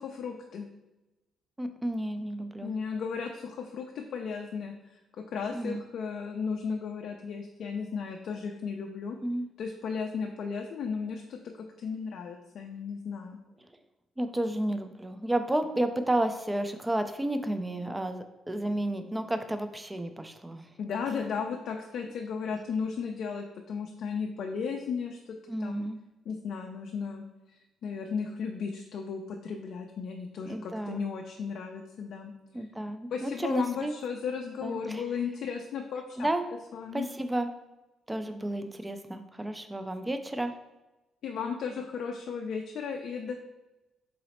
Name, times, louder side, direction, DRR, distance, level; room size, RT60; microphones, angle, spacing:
voice 1, 0.0-0.7 2.6-5.0 5.3-9.2 9.6-11.5 11.8-13.4 20.8-25.8 26.3-27.3 27.8-32.3 33.1-36.3 36.7-37.1 41.2-43.3, left 6 dB, 65° left, 2 dB, 0.3 m, -35 dB
voice 2, 1.6-2.7 5.5-5.8 9.2-9.5 14.2-20.7 25.5-26.0 30.5-31.0 32.5-33.9 34.6-35.0 36.2-36.5 36.9-37.5 38.1-40.5, right 1 dB, 15° right, 8 dB, 0.3 m, -31 dB
3.9 x 2.0 x 4.1 m, 1.0 s
cardioid pair, 90°, 0 cm